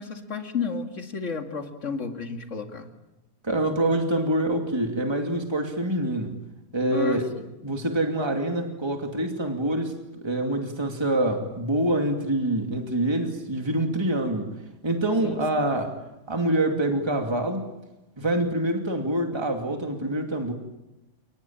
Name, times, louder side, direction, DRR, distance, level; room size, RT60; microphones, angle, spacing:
voice 1, 0.0-2.9 6.9-7.5 15.2-15.4, left 4 dB, 45° left, 6 dB, 2.5 m, -32 dB
voice 2, 3.4-6.4 6.7-7.3 7.6-14.5 14.8-16.0 16.3-17.7 18.2-20.5, right 1 dB, 15° right, 4 dB, 2.6 m, -26 dB
29.0 x 20.5 x 8.9 m, 0.96 s
omnidirectional pair, 1.8 m